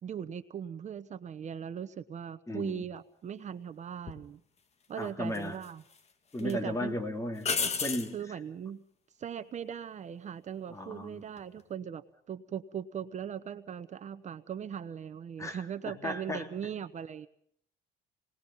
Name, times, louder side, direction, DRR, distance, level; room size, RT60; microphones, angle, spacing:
voice 1, 0.0-4.4 4.9-5.8 6.4-7.0 8.1-8.8 9.2-17.3, right 8 dB, 45° right, 12 dB, 1.0 m, -39 dB
voice 2, 2.5-2.8 5.0-5.6 6.3-7.5 7.8-8.4 10.7-11.2 15.4-15.6 15.8-16.5, left 1 dB, 20° left, 6 dB, 3.3 m, -35 dB
sound 1, 4.1-4.2 5.3-6.0 6.4-6.5 7.4-8.1 11.2-11.6, left 5 dB, 40° left, 2.3 m, -32 dB
28.0 x 19.5 x 5.6 m, 0.68 s
cardioid pair, 105°, 17 cm